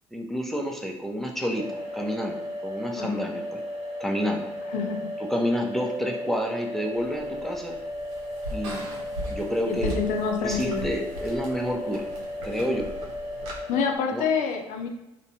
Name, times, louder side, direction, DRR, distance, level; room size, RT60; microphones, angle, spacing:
voice 1, 0.1-3.4 4.0-4.5 5.3-7.8 8.5-8.8 9.3-9.9 10.4-12.1 12.4-12.9 14.1-14.2, equal, ahead, 1 dB, 0.5 m, -29 dB
sound 1, 1.6-14.0, left 1 dB, 55° right, 0.9 m, -35 dB
voice 2, 3.0-3.3 4.7-5.1 9.6-10.9 13.7-14.9, left 5 dB, 65° left, 3 dB, 0.5 m, -27 dB
sound 2, 7.0-13.6, equal, 85° right, 0.6 m, -39 dB
2.6 x 2.1 x 2.7 m, 0.99 s
hypercardioid pair, 60°, 14 cm